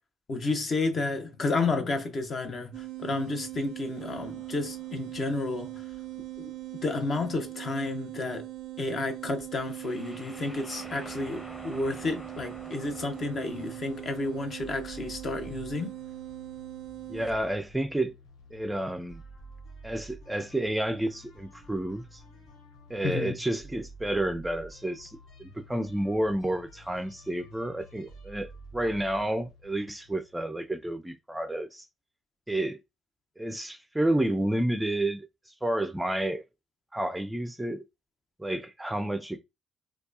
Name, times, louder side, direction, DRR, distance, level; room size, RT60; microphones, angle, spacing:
voice 1, 0.3-5.7 6.4-6.5 6.8-8.5 8.8-15.9 23.0-23.4, left 3 dB, 50° left, 0.9 m, -31 dB
sound 1, 2.7-17.5, right 16 dB, 80° right, 0.4 m, -41 dB
sound 2, 4.0-6.8 9.6-16.5, equal, 5° left, 0.9 m, -50 dB
sound 3, 13.5-30.8, right 1 dB, 85° left, 1.1 m, -50 dB
voice 2, 17.1-18.1 18.5-19.2 19.8-22.2 22.9-31.8 32.5-32.8 33.4-36.4 36.9-37.8 38.4-39.4, right 1 dB, 10° right, 0.4 m, -30 dB
4.3 x 2.3 x 2.7 m
supercardioid pair, 75°, 0 cm